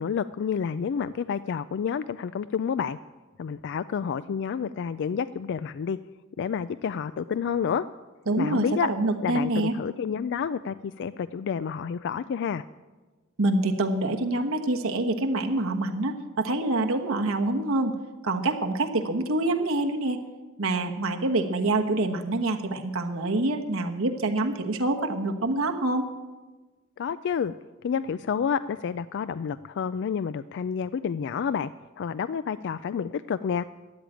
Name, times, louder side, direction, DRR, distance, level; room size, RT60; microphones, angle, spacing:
voice 1, 0.0-3.0 3.4-6.0 6.4-7.8 8.4-8.9 9.2-12.6 27.0-27.5 27.8-31.7 32.0-33.6, left 7 dB, 60° left, 15 dB, 0.3 m, -29 dB
voice 2, 8.3-9.7 13.4-17.9 18.2-20.2 20.6-26.1, right 2 dB, 80° right, 3 dB, 1.3 m, -26 dB
13.0 x 8.7 x 9.1 m, 1.2 s
head